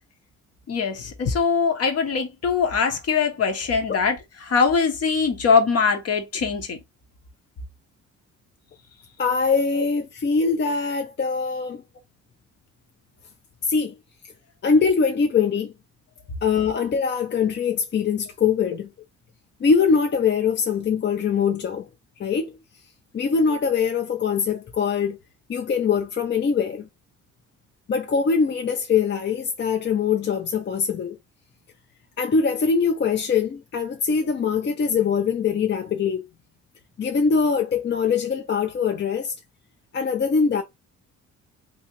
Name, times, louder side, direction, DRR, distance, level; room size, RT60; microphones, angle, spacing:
voice 1, 0.7-4.2 4.4-6.8, left 5 dB, 55° left, 1.0 m, -22 dB
voice 2, 9.2-11.8 13.6-14.0 14.6-15.7 16.4-18.9 19.6-21.9 22.2-22.5 23.1-25.2 25.5-26.9 27.9-31.2 32.2-36.2 37.0-39.3 39.9-40.6, left 5 dB, 35° left, 0.5 m, -22 dB
3.1 x 2.8 x 2.9 m
cardioid pair, 90°, 30 cm